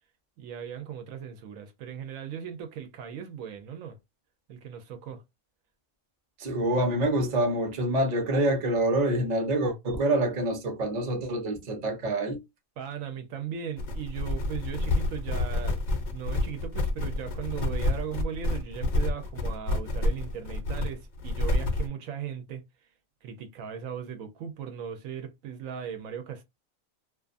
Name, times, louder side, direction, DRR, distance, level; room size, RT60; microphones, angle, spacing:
voice 1, 0.4-4.0 4.5-5.2 12.8-22.6 23.2-26.4, right 8 dB, 80° right, 1.0 m, -38 dB
voice 2, 6.4-12.4, right 1 dB, 40° right, 0.8 m, -26 dB
sound 1, 13.8-21.9, left 2 dB, 55° left, 0.5 m, -28 dB
2.5 x 2.4 x 2.4 m
omnidirectional pair, 1.4 m